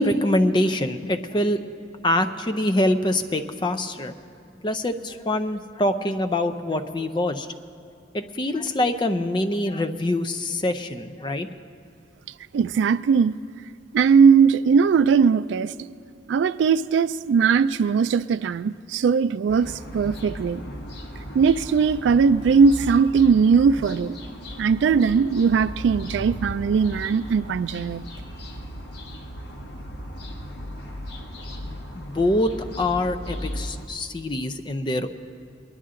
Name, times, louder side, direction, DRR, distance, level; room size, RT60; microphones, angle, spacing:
voice 1, 0.0-1.6 2.0-4.2 4.6-7.5 8.1-11.5 31.6-35.1, left 1 dB, 25° left, 0.5 m, -24 dB
voice 2, 12.5-13.4 13.9-15.7 16.3-20.6 21.3-24.2 24.6-28.0, right 6 dB, 80° right, 0.3 m, -19 dB
sound 1, 19.5-33.9, equal, 60° left, 1.2 m, -36 dB
21.5 x 11.0 x 3.8 m
head